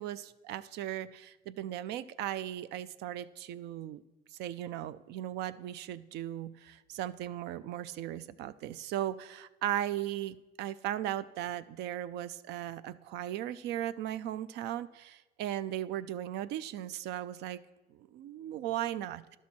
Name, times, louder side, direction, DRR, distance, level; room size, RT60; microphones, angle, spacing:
voice 1, 0.0-4.0 4.3-17.6 17.9-19.4, right 12 dB, 80° right, 15 dB, 0.4 m, -37 dB
11.0 x 6.1 x 4.2 m, 1.1 s
cardioid pair, 110°, 17 cm